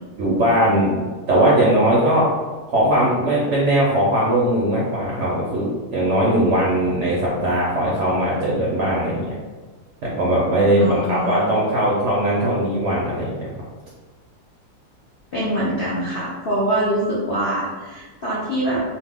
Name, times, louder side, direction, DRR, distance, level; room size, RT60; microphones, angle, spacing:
voice 1, 0.2-2.3 2.7-9.3 10.0-13.5, right 1 dB, 65° right, -6 dB, 0.8 m, -19 dB
voice 2, 10.8-11.4 15.3-18.8, right 1 dB, 70° left, -8 dB, 0.5 m, -24 dB
2.7 x 2.1 x 3.4 m, 1.3 s
omnidirectional pair, 1.7 m